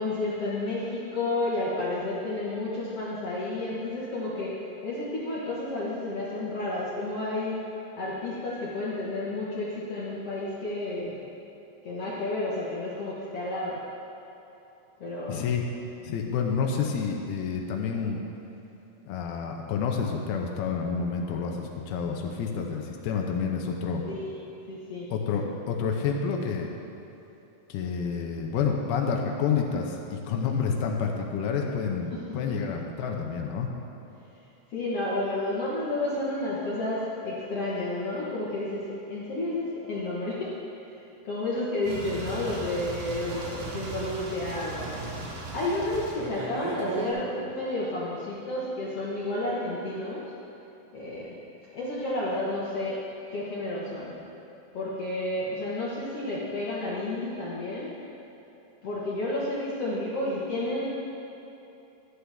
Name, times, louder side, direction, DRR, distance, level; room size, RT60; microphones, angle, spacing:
voice 1, 0.0-7.6 8.0-11.1 11.8-13.8 15.0-15.5 24.1-24.4 24.7-25.1 34.7-40.5 41.0-50.2 50.9-51.3 51.7-53.0 53.3-54.1 54.7-57.9 58.8-60.9, left 2 dB, 60° left, -7 dB, 1.6 m, -31 dB
voice 2, 15.3-15.6 16.0-18.2 19.0-24.0 25.1-26.7 27.7-33.7, left 6 dB, 85° left, 1 dB, 2.7 m, -29 dB
sound 1, 41.9-47.1, right 3 dB, 70° right, 3.0 m, -36 dB
13.0 x 9.7 x 3.5 m, 3.0 s
omnidirectional pair, 4.3 m